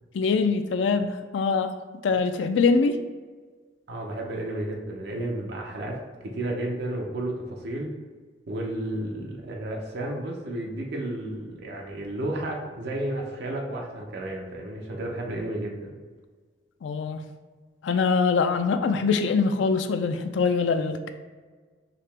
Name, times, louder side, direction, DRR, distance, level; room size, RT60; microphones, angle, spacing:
voice 1, 0.1-1.7 2.0-3.0 16.8-17.2 17.8-21.1, left 4 dB, 85° left, 8 dB, 0.4 m, -23 dB
voice 2, 3.9-6.0 6.2-7.9 8.5-15.9, right 1 dB, 65° right, 0 dB, 0.7 m, -32 dB
5.0 x 2.9 x 3.3 m, 1.4 s
head